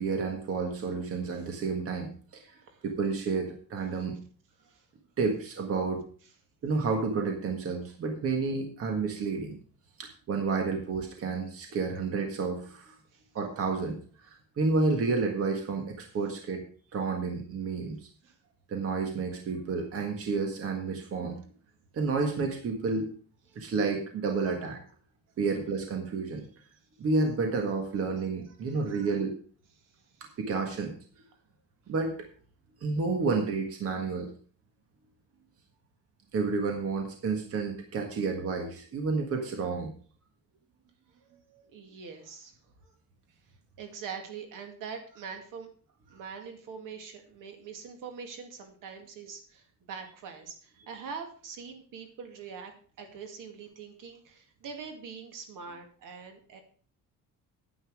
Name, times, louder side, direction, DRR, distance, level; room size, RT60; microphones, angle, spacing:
voice 1, 0.0-2.6 2.8-4.2 5.2-6.0 6.6-9.6 10.0-12.9 13.3-16.6 16.9-18.0 18.7-21.4 21.9-23.1 23.5-24.8 25.4-26.5 27.0-29.3 30.4-30.9 31.9-32.1 32.8-34.3 36.3-39.9, right 4 dB, 45° right, 3 dB, 1.7 m, -30 dB
voice 2, 2.5-2.8 4.6-4.8 13.1-13.2 28.7-29.1 41.3-42.5 43.8-45.7 46.1-56.6, right 6 dB, 70° right, 5 dB, 2.3 m, -43 dB
9.8 x 9.3 x 4.8 m, 0.42 s
cardioid pair, 175°, 33 cm